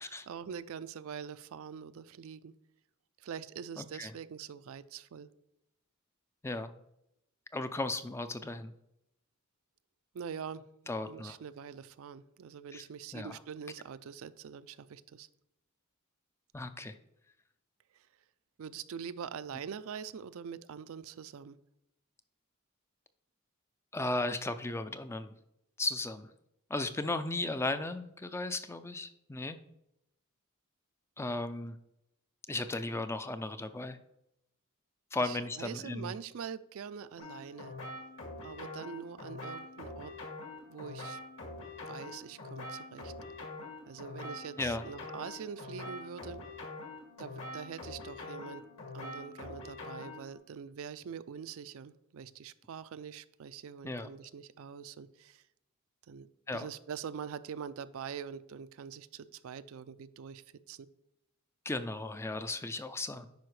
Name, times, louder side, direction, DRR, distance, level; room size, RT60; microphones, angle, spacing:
voice 1, 0.0-2.5 3.2-5.3 10.1-15.3 17.9-18.1 18.6-21.6 35.2-37.7 38.4-40.1 40.7-41.2 41.9-43.1 43.9-46.4 47.2-48.7 48.9-55.4 56.1-56.3 56.5-60.9, right 7 dB, 65° right, 14 dB, 0.4 m, -44 dB
voice 2, 3.8-4.1 6.4-6.7 7.5-8.7 10.9-11.4 12.7-12.8 13.1-13.3 16.5-17.0 23.9-25.3 25.8-26.3 26.7-29.6 31.2-31.8 32.5-34.0 35.1-36.1 44.6-44.8 53.8-54.1 56.5-56.7 61.7-63.3, left 2 dB, 10° left, 10 dB, 0.3 m, -35 dB
sound 1, 37.2-50.4, left 2 dB, 60° left, 2.0 m, -44 dB
10.5 x 5.0 x 3.2 m, 0.82 s
head